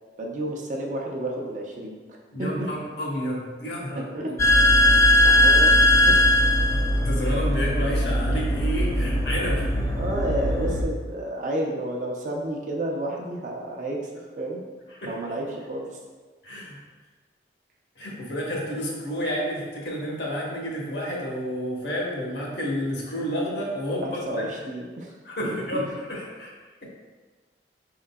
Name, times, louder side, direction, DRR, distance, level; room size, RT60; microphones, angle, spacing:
voice 1, 0.2-2.7 4.0-4.4 5.2-6.2 9.9-14.1 14.4-14.6 15.0-16.0 24.0-25.1 25.4-25.8, right 1 dB, 45° right, -1 dB, 0.6 m, -31 dB
voice 2, 2.3-4.3 6.7-9.9 15.0-15.1 16.4-16.8 18.0-24.4 25.2-26.5 26.8-26.9, equal, 75° left, -3 dB, 1.0 m, -30 dB
sound 1, 4.4-10.8, left 1 dB, 15° left, 0.3 m, -20 dB
4.7 x 3.8 x 2.2 m, 1.4 s
head